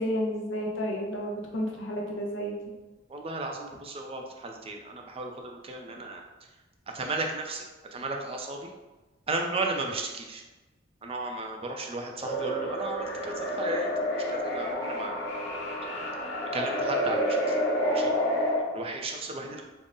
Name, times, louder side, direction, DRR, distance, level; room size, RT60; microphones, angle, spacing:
voice 1, 0.0-2.6, equal, 70° left, -1 dB, 0.7 m, -31 dB
voice 2, 3.1-6.2 6.9-7.6 7.9-8.7 9.3-10.4 11.0-15.2 16.5-17.6 17.9-18.1 18.7-19.6, right 2 dB, 30° right, 2 dB, 0.4 m, -34 dB
sound 1, 12.2-18.6, equal, 35° left, 1.3 m, -29 dB
3.6 x 2.0 x 3.8 m, 1.2 s
head